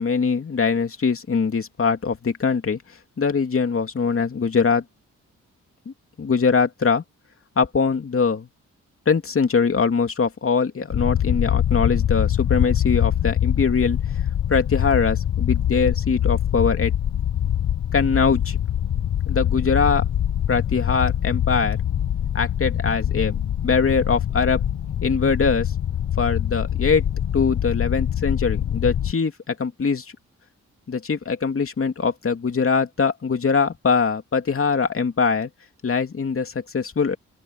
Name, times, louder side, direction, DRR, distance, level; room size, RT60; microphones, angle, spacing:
voice 1, 0.0-2.8 3.2-4.8 6.2-7.0 7.6-8.5 9.1-14.0 14.5-16.9 17.9-18.6 19.2-20.0 20.5-21.8 22.3-23.4 23.6-24.6 25.0-25.7 26.2-27.0 27.3-30.0 30.9-35.5 35.8-37.2, left 5 dB, 45° left, 2.8 m, -22 dB
sound 1, 10.9-29.1, left 10 dB, 65° left, 1.2 m, -24 dB
open air
cardioid pair, 70°, 31 cm